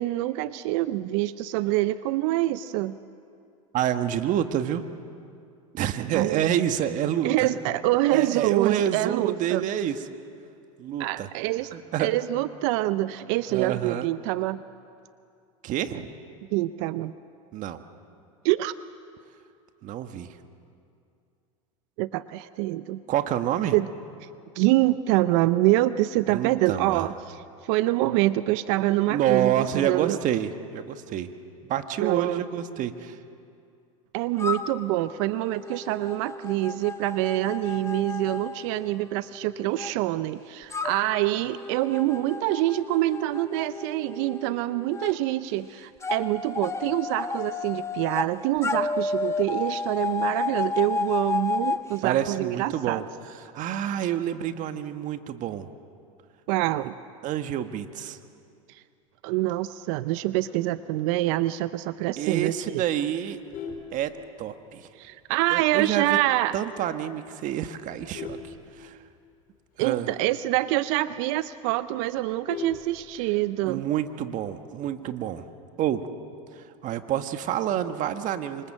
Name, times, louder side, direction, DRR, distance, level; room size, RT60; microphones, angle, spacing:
voice 1, 0.0-3.0 6.1-6.5 7.2-9.6 11.0-11.7 12.0-14.6 16.5-17.1 18.4-18.7 22.0-23.0 23.7-23.9 24.2-24.3 24.5-30.2 32.0-32.4 34.1-53.0 56.5-57.0 58.7-58.8 59.2-62.8 65.0-66.6 69.8-73.8, right 16 dB, 60° right, 14 dB, 0.7 m, -26 dB
voice 2, 3.7-4.9 5.7-7.5 8.1-10.0 10.8-11.3 11.7-12.1 13.5-14.1 15.6-16.1 17.5-17.8 19.8-20.4 23.1-23.8 26.3-27.1 29.1-31.3 31.6-33.2 52.0-53.1 53.4-55.7 57.2-58.2 62.2-63.4 63.9-64.1 64.4-64.9 65.5-66.2 66.5-68.4 68.8-69.0 69.8-70.1 73.6-75.5 75.8-76.1 76.5-78.7, right 10 dB, 45° right, 8 dB, 1.7 m, -28 dB
sound 1, 34.4-39.9 40.7-45.1 46.0-48.3 48.6-51.8, left 4 dB, 15° left, 1.5 m, -32 dB
Vehicle horn car horn honking, 63.2-64.7 65.2-65.4 65.7-65.8 66.3-66.4 66.7-67.0 67.6-69.4 69.8-69.9 70.2-70.3 70.7-70.8 71.1-71.2 71.5-73.5 74.7-75.1, left 6 dB, 55° left, 4.6 m, -40 dB
27.0 x 24.5 x 7.6 m, 2.5 s
hypercardioid pair, 95°, 18 cm